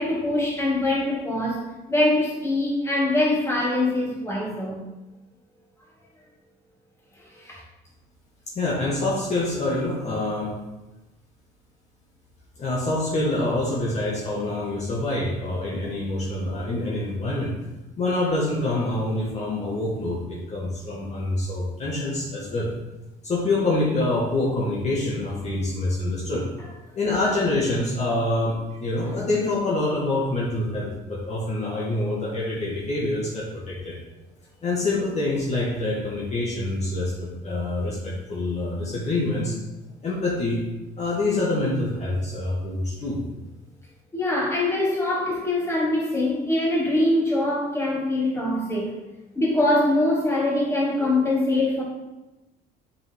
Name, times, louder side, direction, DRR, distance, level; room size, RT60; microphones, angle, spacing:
voice 1, 0.0-1.6 1.9-4.8 7.3-7.6 44.1-48.9 49.4-51.8, left 1 dB, 15° left, -4 dB, 2.3 m, -23 dB
voice 2, 8.6-10.5 12.6-17.5 18.0-22.7 23.2-26.5 27.0-34.0 34.6-39.6 40.0-40.7 41.0-43.2, left 2 dB, 40° left, -5 dB, 1.8 m, -26 dB
7.2 x 5.8 x 3.7 m, 1.0 s
cardioid pair, 110°, 17 cm